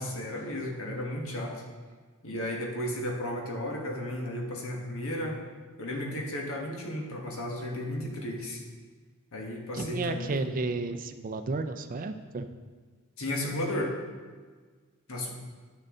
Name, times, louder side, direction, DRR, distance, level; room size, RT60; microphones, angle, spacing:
voice 1, 0.0-1.6 2.2-5.4 5.8-8.6 9.3-10.5 13.2-13.9 15.1-15.3, left 1 dB, 65° left, 0 dB, 1.5 m, -34 dB
voice 2, 9.7-12.5, right 3 dB, 40° right, 8 dB, 0.5 m, -32 dB
10.5 x 6.6 x 3.8 m, 1.5 s
head